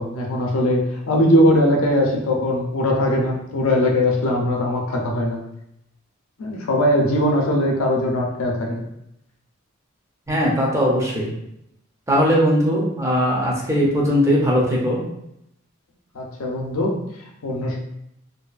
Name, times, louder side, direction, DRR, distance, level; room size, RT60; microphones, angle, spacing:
voice 1, 0.0-5.4 6.4-8.8 16.1-16.9 17.4-17.8, left 1 dB, 75° left, 0 dB, 0.5 m, -20 dB
voice 2, 10.3-11.3 12.1-15.0, equal, 15° right, -4 dB, 0.5 m, -19 dB
2.6 x 2.3 x 2.3 m, 0.80 s
head